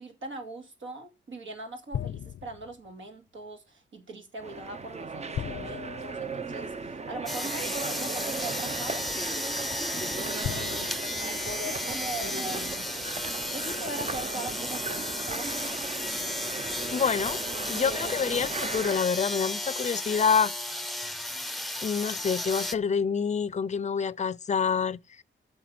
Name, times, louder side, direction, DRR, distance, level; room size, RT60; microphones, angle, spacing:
voice 1, 0.0-9.1 10.0-12.8 13.5-15.6, right 2 dB, 75° right, 2.6 m, -41 dB
sound 1, 1.9-2.9 5.3-7.0 8.2-8.3 10.4-12.2, left 10 dB, 85° left, 0.5 m, -38 dB
sound 2, 4.4-19.0, right 4 dB, 35° right, 0.6 m, -37 dB
sound 3, 7.3-22.7, left 1 dB, ahead, 0.7 m, -34 dB
voice 2, 16.9-17.4 17.7-20.5 21.8-25.0, left 6 dB, 35° left, 0.5 m, -27 dB
9.3 x 6.6 x 7.6 m
wide cardioid pair, 130°, 20 cm